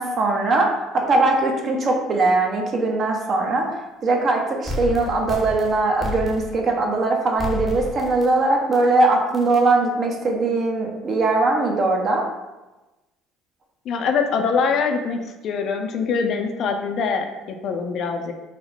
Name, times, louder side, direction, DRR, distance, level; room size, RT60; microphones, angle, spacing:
voice 1, 0.0-12.2, right 2 dB, 45° right, 1 dB, 0.7 m, -20 dB
sound 1, 4.7-6.7 7.4-8.3 8.7-8.8 9.3-9.6, left 2 dB, 15° right, 0.8 m, -31 dB
voice 2, 13.9-18.3, left 5 dB, 60° left, 5 dB, 0.4 m, -24 dB
2.9 x 2.0 x 4.0 m, 1.1 s
hypercardioid pair, 70°, 0 cm